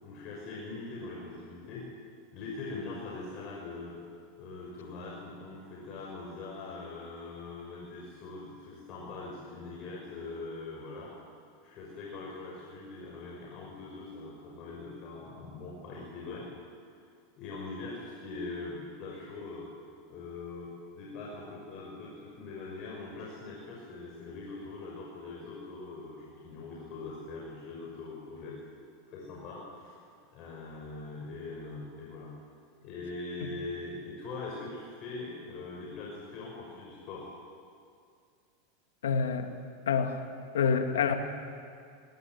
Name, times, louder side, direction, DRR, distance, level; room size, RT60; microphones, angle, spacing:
voice 1, 0.0-1.9 2.3-4.0 4.4-11.1 11.6-16.5 17.4-19.7 20.1-28.6 29.1-30.0 30.3-32.3 32.8-37.3, left 3 dB, 50° left, -3 dB, 6.0 m, -42 dB
voice 2, 39.0-39.5 39.9-40.2 40.5-41.2, left 6 dB, 85° left, 6 dB, 2.1 m, -27 dB
20.5 x 19.5 x 9.6 m, 2.3 s
hypercardioid pair, 110°, 0 cm